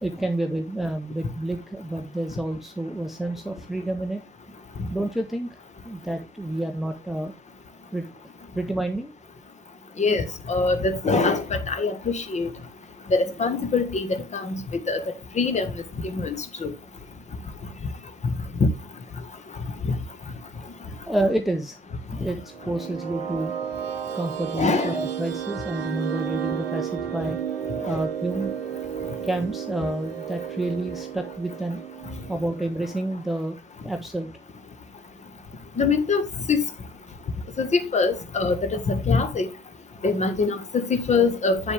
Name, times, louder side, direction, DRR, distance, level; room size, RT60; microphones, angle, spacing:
voice 1, 0.0-4.2 4.9-7.3 7.9-8.2 8.5-9.1 21.1-21.8 22.1-23.5 24.1-27.4 27.9-28.8 29.2-31.8 32.3-33.6 33.8-34.3, right 1 dB, ahead, 0.8 m, -29 dB
voice 2, 10.0-12.5 13.1-14.6 14.9-15.0 15.4-15.7 16.0-16.4 16.6-16.7 18.6-18.7 19.8-19.9 24.6-24.9 27.8-28.0 35.8-36.6 37.6-39.5 40.0-41.7, left 4 dB, 25° left, 1.4 m, -23 dB
sound 1, 22.3-33.2, right 9 dB, 75° right, 0.8 m, -33 dB
8.2 x 7.1 x 3.4 m
figure-of-eight pair, 65°, 30 cm